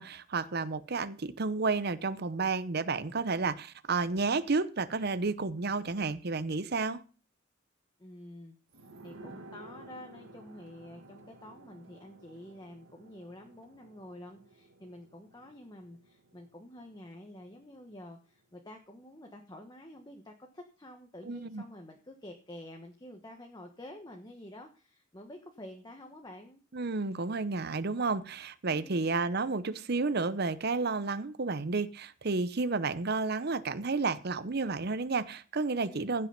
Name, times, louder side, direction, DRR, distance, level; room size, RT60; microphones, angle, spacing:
voice 1, 0.0-7.0 21.3-21.6 26.7-36.3, right 4 dB, 50° right, 14 dB, 0.8 m, -31 dB
voice 2, 8.0-8.6 9.0-26.6 28.7-29.1 35.8-36.1, left 1 dB, 20° left, 3 dB, 1.3 m, -49 dB
sound 1, 8.7-18.0 18.3-18.4, right 2 dB, 85° right, 2.1 m, -54 dB
15.5 x 6.0 x 5.8 m, 0.37 s
head